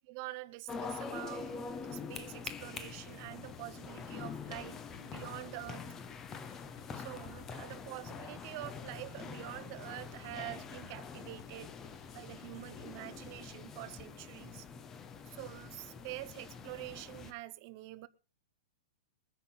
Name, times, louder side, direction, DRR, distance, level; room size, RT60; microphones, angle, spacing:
voice 1, 0.1-5.9 6.9-11.8 12.1-14.7 15.2-18.1, right 19 dB, 30° right, 0.7 m, -46 dB
sound 1, 0.7-17.3, left 5 dB, 10° left, 0.7 m, -45 dB
sound 2, 2.6-13.7, left 7 dB, 55° left, 1.3 m, -59 dB
21.5 x 9.8 x 4.0 m
supercardioid pair, 180°, 3 cm